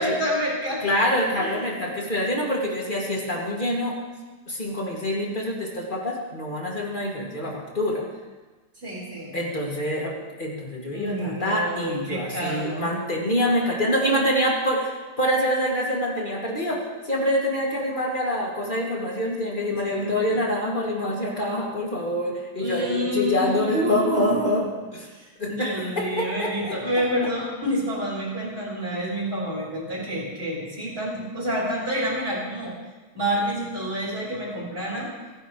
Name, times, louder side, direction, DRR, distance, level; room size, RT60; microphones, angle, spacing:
voice 1, 0.0-0.8 1.4-2.1 8.8-9.3 10.9-12.9 19.8-20.4 22.6-24.4 25.1-32.7 33.1-35.1, equal, 30° right, -7 dB, 5.8 m, -28 dB
voice 2, 0.8-4.0 4.5-8.0 9.3-24.7 24.9-25.0 25.4-26.8, equal, 25° left, -2 dB, 2.7 m, -26 dB
25.0 x 11.0 x 3.3 m, 1.3 s
omnidirectional pair, 1.9 m